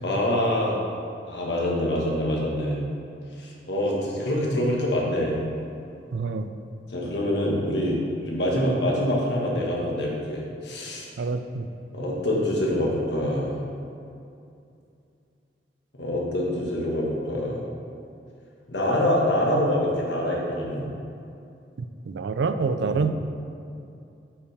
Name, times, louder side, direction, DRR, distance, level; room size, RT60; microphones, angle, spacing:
voice 1, 0.0-0.8 1.3-2.8 3.4-5.4 6.9-11.1 11.9-13.6 16.0-17.6 18.7-20.8 22.8-23.0, left 1 dB, 65° left, -3 dB, 1.4 m, -25 dB
voice 2, 6.1-6.5 11.2-11.7 21.8-23.1, right 4 dB, 70° right, 9 dB, 0.4 m, -27 dB
8.6 x 5.6 x 3.4 m, 2.6 s
head